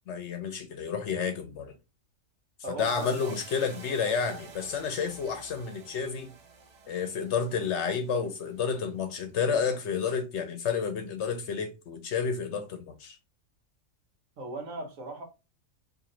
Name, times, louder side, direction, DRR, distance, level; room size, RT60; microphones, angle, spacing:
voice 1, 0.1-1.7 2.7-6.3 6.9-13.2, left 6 dB, 65° left, 0.8 m, -30 dB
voice 2, 2.6-3.4 14.4-15.2, right 2 dB, 75° right, 1.4 m, -38 dB
sound 1, 2.8-9.2, right 4 dB, 50° right, 0.5 m, -51 dB
3.0 x 2.6 x 3.7 m
omnidirectional pair, 1.4 m